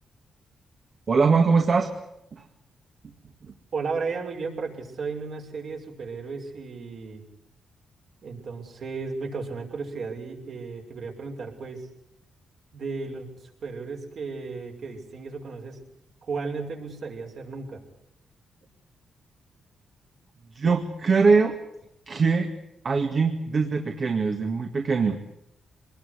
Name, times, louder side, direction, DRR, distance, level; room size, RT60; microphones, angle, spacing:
voice 1, 1.1-1.9 2.3-2.4 3.4-3.5 20.5-21.6 22.1-22.5 22.8-25.2, right 4 dB, 45° right, 4 dB, 2.1 m, -22 dB
voice 2, 3.7-7.2 8.2-11.9 12.7-15.8 16.2-17.8, right 4 dB, 60° right, 1 dB, 6.2 m, -34 dB
25.0 x 20.5 x 8.3 m, 0.82 s
cardioid pair, 115°, 0 cm